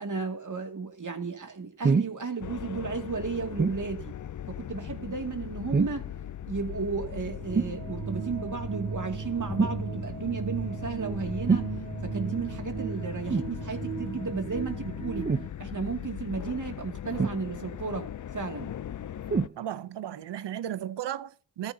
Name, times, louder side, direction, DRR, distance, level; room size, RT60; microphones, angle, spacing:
voice 1, 0.0-4.1 4.5-6.1 6.5-11.7 12.0-15.3 15.6-18.1 18.3-18.7, right 4 dB, 45° right, 2.4 m, -34 dB
sound 1, 1.8-2.2 3.6-3.8 5.7-6.1 7.5-7.8 9.6-9.8 11.5-11.7 13.3-13.5 15.2-15.5 17.2-17.8 19.3-19.6 20.4-20.5, right 5 dB, 25° right, 0.6 m, -25 dB
sound 2, 2.4-19.5, left 10 dB, 50° left, 0.5 m, -39 dB
sound 3, 6.6-15.5, right 5 dB, 70° right, 2.0 m, -37 dB
voice 2, 19.6-21.7, right 11 dB, 85° right, 0.7 m, -35 dB
18.0 x 13.5 x 2.8 m
cardioid pair, 55°, 41 cm